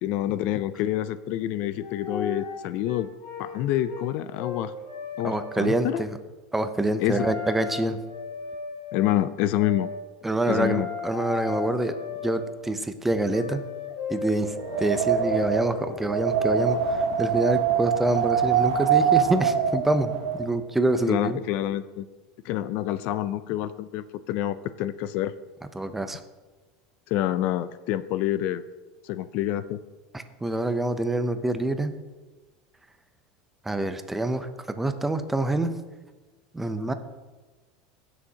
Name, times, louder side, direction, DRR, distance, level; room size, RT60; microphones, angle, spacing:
voice 1, 0.0-3.1 3.4-4.7 5.2-6.0 7.0-7.3 8.9-9.9 10.5-10.9 21.1-22.1 22.4-25.3 27.1-28.6 29.0-29.8, left 13 dB, 55° left, 14 dB, 0.4 m, -27 dB
sound 1, 1.4-1.5 1.8-4.1 4.3-5.9 7.1-9.1 9.5-10.0 10.4-12.5 13.3-16.9, left 5 dB, 80° left, 2.3 m, -36 dB
voice 2, 5.2-6.2 6.5-8.0 10.2-11.9 12.2-13.6 14.1-21.4 25.7-26.2 30.1-31.9 33.6-35.7 36.5-36.9, right 2 dB, 5° right, 9 dB, 0.6 m, -26 dB
Wind, 14.5-20.5, right 8 dB, 90° right, 0.9 m, -24 dB
17.0 x 6.3 x 2.8 m, 1.3 s
supercardioid pair, 140°, 3 cm